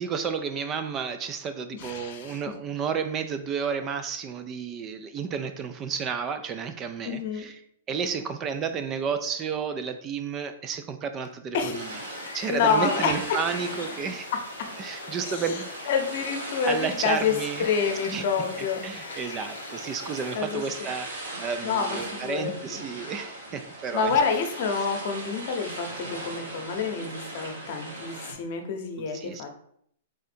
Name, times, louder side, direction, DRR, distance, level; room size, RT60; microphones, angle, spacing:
voice 1, 0.0-7.6 7.9-11.9 12.3-14.3 14.8-15.7 16.7-17.7 18.1-18.2 18.6-24.1 24.8-24.9 29.0-29.5, right 6 dB, 25° right, 9 dB, 0.3 m, -32 dB
voice 2, 1.7-2.4 7.0-7.5 11.5-11.8 12.5-13.1 15.2-15.5 15.9-17.3 17.6-18.8 20.3-20.9 21.6-22.8 23.9-29.5, left 5 dB, 55° left, 4 dB, 0.8 m, -28 dB
sound 1, 11.7-20.4, left 6 dB, 85° left, 0.5 m, -43 dB
sound 2, 11.7-28.3, right 2 dB, 85° right, 1.5 m, -39 dB
3.7 x 2.6 x 4.2 m, 0.67 s
hypercardioid pair, 145°, 0 cm